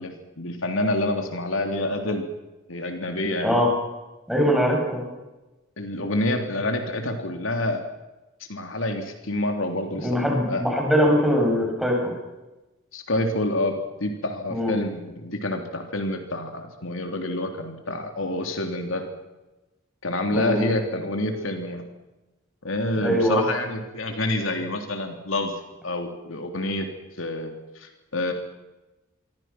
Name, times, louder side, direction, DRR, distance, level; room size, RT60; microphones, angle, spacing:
voice 1, 0.0-2.3 2.7-3.7 5.8-7.8 8.5-10.7 12.9-19.0 20.0-21.8 22.6-25.5 25.8-26.9 27.2-28.3, left 1 dB, 80° left, 4 dB, 3.4 m, -28 dB
voice 2, 4.3-5.0 10.0-12.0 14.5-14.7 20.3-20.7 23.0-23.4, equal, ahead, -1 dB, 8.0 m, -22 dB
27.5 x 24.0 x 6.1 m, 1.1 s
head